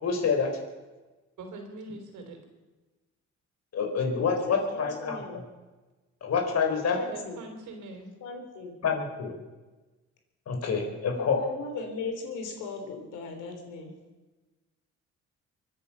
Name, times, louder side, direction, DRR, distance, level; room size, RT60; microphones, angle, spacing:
voice 1, 0.0-0.5 3.7-5.4 6.2-7.0 8.8-9.3 10.5-11.4, left 5 dB, 60° left, 4.1 m, -27 dB
voice 2, 1.4-2.4 7.1-8.1, right 3 dB, 80° right, 3.6 m, -42 dB
voice 3, 4.3-5.4 6.9-7.4 8.2-8.8 11.1-13.9, left 4 dB, 85° left, 3.5 m, -38 dB
24.0 x 9.8 x 5.6 m
cardioid pair, 90°, 30 cm